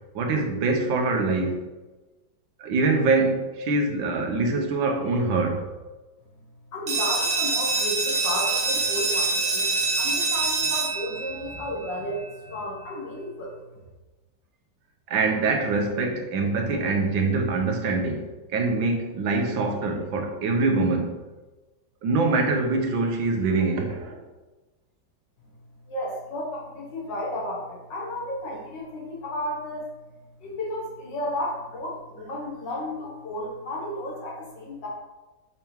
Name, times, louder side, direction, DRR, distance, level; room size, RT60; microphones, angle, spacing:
voice 1, 0.1-1.7 2.6-5.6 15.1-21.2 22.0-24.2, right 3 dB, 90° right, 3 dB, 1.7 m, -24 dB
voice 2, 6.7-13.6 25.9-29.9 30.4-34.9, left 1 dB, 70° left, -3 dB, 2.2 m, -33 dB
sound 1, 6.9-12.3, right 3 dB, 45° right, 0.9 m, -25 dB
6.8 x 3.5 x 4.5 m, 1.2 s
omnidirectional pair, 2.0 m